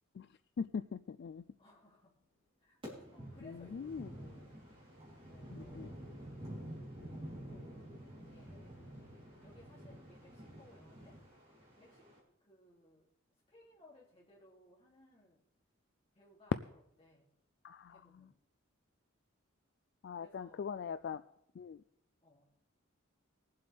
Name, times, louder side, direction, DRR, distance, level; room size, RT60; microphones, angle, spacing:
voice 1, 0.6-1.4 3.4-4.1 5.5-5.9 17.6-18.3 20.0-21.2 21.6-21.8, left 6 dB, 55° left, 0.3 m, -42 dB
voice 2, 1.6-2.2 2.6-2.8 3.1-4.6 5.2-6.2 7.1-8.7 9.4-11.2 11.7-12.1 12.4-13.1 13.5-15.4 16.1-17.3 17.9-18.4 20.1-20.7 22.2-22.5, left 1 dB, 25° left, 2.8 m, -63 dB
sound 1, 2.8-12.2, equal, 25° right, 3.3 m, -49 dB
20.5 x 7.7 x 3.4 m
head